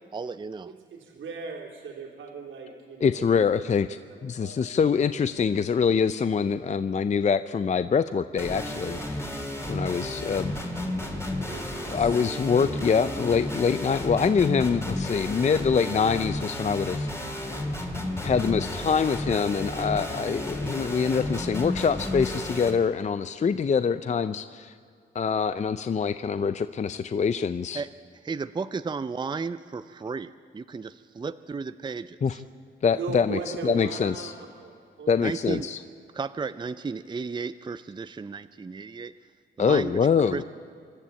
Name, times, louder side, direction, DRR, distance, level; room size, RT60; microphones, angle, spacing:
voice 1, 0.1-0.7 27.7-27.9 28.2-32.4 35.2-35.7 36.1-39.1 39.6-40.0 40.3-40.4, right 4 dB, 25° right, 12 dB, 0.5 m, -34 dB
voice 2, 0.6-3.2 4.1-4.6 9.9-10.1 10.9-12.2 32.9-34.3 34.6-35.2, right 5 dB, 85° right, 0 dB, 3.4 m, -38 dB
voice 3, 3.0-9.3 9.7-10.5 10.8-11.0 11.9-17.1 18.2-24.7 25.1-27.8 32.2-32.4 32.8-34.3 35.1-35.8 39.6-40.4, left 6 dB, 35° left, 12 dB, 0.5 m, -25 dB
sound 1, 8.4-22.7, left 1 dB, 15° left, 2.9 m, -32 dB
25.0 x 12.5 x 8.7 m, 2.3 s
cardioid pair, 100°, 20 cm